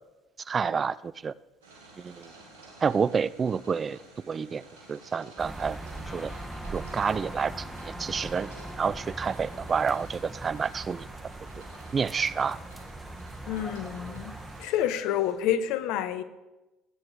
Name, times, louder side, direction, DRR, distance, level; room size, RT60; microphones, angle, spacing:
voice 1, 0.5-1.3 2.0-2.3 2.8-4.0 4.3-4.6 4.9-5.8 6.1-6.3 6.7-8.5 8.8-11.1 11.9-12.6, right 6 dB, 35° right, 0.4 m, -29 dB
sound 1, 1.6-15.3, right 2 dB, 85° right, 3.5 m, -52 dB
sound 2, 5.4-14.6, right 2 dB, 15° right, 1.7 m, -41 dB
Wind instrument woodwind instrument, 6.0-9.9, left 2 dB, 25° left, 1.7 m, -48 dB
voice 2, 13.5-14.3 14.6-16.2, left 10 dB, 70° left, 1.0 m, -28 dB
19.0 x 9.7 x 4.8 m
hypercardioid pair, 65°, 0 cm